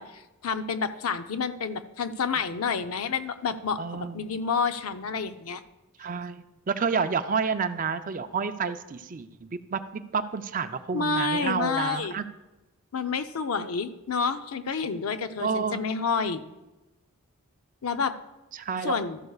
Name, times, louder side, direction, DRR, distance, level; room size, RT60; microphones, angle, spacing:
voice 1, 0.0-5.6 10.9-12.2 12.9-16.4 17.8-18.1 18.8-19.2, left 5 dB, 75° left, 10 dB, 0.6 m, -29 dB
voice 2, 3.8-4.2 6.0-12.2 15.4-15.8 18.5-18.9, right 5 dB, 35° right, 10 dB, 0.5 m, -30 dB
13.0 x 11.0 x 2.4 m, 1.0 s
head